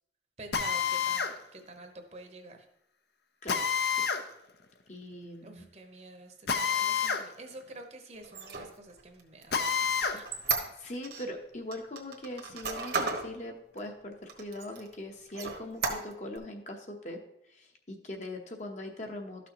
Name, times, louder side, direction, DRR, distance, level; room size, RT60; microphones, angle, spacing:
voice 1, 0.4-2.6 5.4-10.3, right 2 dB, 35° right, 5 dB, 0.9 m, -48 dB
Drill, 0.5-1.3 3.5-4.2 6.5-7.2 7.6-7.7 9.5-10.2, left 6 dB, 65° left, 0.7 m, -28 dB
voice 2, 3.4-4.0 4.9-5.7 10.8-17.2 17.5-19.5, left 1 dB, 40° left, 3 dB, 0.9 m, -41 dB
Squeak, 8.2-11.3 11.7-13.3 13.8-13.9 14.3-14.9 15.3-16.4, right 4 dB, 65° right, 1.2 m, -34 dB
12.5 x 6.1 x 3.0 m, 0.79 s
head